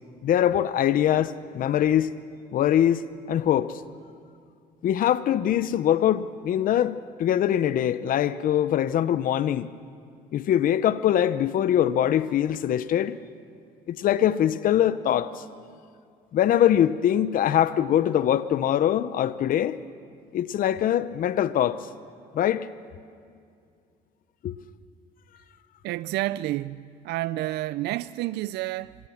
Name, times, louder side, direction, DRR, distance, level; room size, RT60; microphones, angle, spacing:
voice 1, 0.2-2.1 2.5-3.8 4.8-9.7 10.3-13.2 13.9-15.4 16.3-19.8 20.3-21.9 22.3-22.7 24.4-24.6, left 10 dB, 55° left, 0.7 m, -23 dB
voice 2, 25.8-29.0, right 16 dB, 80° right, 0.4 m, -30 dB
26.0 x 18.0 x 7.2 m
cardioid pair, 110°, 17 cm